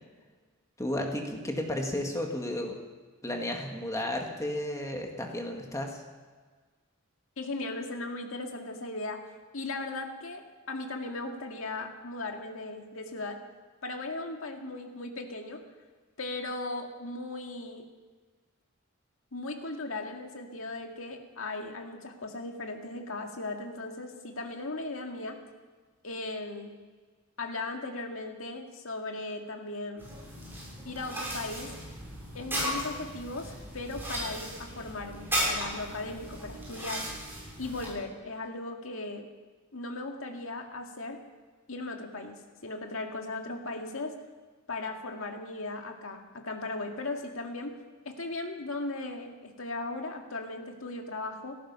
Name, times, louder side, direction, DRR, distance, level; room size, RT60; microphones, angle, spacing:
voice 1, 0.8-2.8 3.2-6.0, left 1 dB, 15° left, 2 dB, 1.9 m, -33 dB
voice 2, 7.4-9.2 9.5-13.4 13.8-15.6 16.2-17.8 19.3-25.4 26.0-26.8 27.4-30.1 30.9-31.7 32.3-37.1 37.6-39.3 39.7-41.2 41.7-44.2 44.7-47.8 48.1-51.6, left 2 dB, 70° left, 3 dB, 2.1 m, -37 dB
sound 1, 30.0-37.9, equal, 10° right, 6.9 m, -36 dB
17.5 x 14.5 x 5.6 m, 1.4 s
head